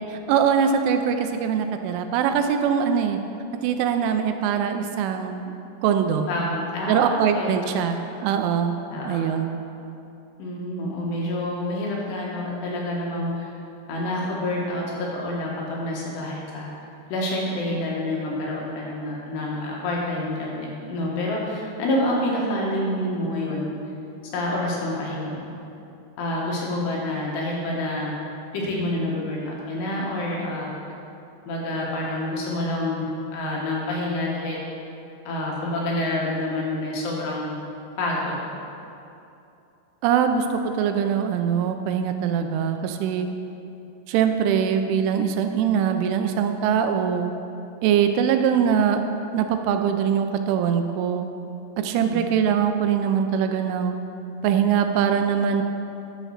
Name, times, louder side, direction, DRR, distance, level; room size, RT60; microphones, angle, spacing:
voice 1, 0.1-3.2 3.6-5.5 5.8-6.3 6.9-8.8 9.1-9.6 40.0-43.3 44.1-47.3 47.8-49.0 49.3-51.3 51.8-54.0 54.4-55.6, right 7 dB, 85° right, 7 dB, 3.0 m, -22 dB
voice 2, 6.3-7.9 8.9-9.3 10.4-13.5 13.9-16.7 17.1-23.8 24.3-25.5 26.2-28.1 28.5-30.7 31.5-33.1 33.3-34.6 35.3-37.6 38.0-38.4 51.9-52.2, left 1 dB, 65° left, -4 dB, 3.3 m, -28 dB
11.0 x 6.5 x 6.4 m, 2.8 s
omnidirectional pair, 5.6 m